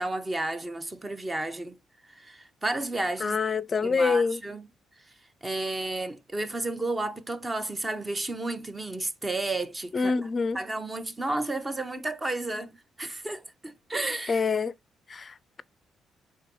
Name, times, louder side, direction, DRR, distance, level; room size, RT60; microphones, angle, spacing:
voice 1, 0.0-1.8 2.1-3.4 3.8-4.6 5.4-10.1 10.5-14.4, right 2 dB, 20° right, 0.7 m, -32 dB
voice 2, 3.2-4.4 9.9-10.6 14.3-14.7 15.1-15.6, left 5 dB, 35° left, 0.4 m, -26 dB
4.7 x 3.3 x 3.0 m
cardioid pair, 90°, 0 cm